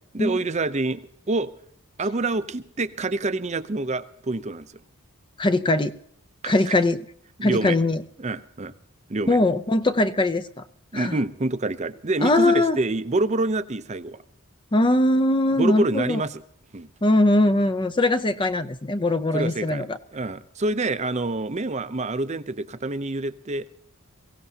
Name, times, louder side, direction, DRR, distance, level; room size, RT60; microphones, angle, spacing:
voice 1, 0.1-1.0 1.3-1.5 2.0-4.7 6.4-6.7 7.4-7.8 8.2-8.7 9.1-9.4 10.9-14.2 15.6-16.4 16.7-16.9 19.3-19.8 20.1-23.7, right 2 dB, 30° right, 12 dB, 0.6 m, -27 dB
voice 2, 5.4-5.9 6.4-7.0 7.4-8.0 9.3-10.6 10.9-11.2 12.2-12.8 14.7-16.2 17.0-20.0, left 2 dB, 20° left, 11 dB, 0.5 m, -21 dB
22.5 x 16.5 x 2.8 m, 0.65 s
head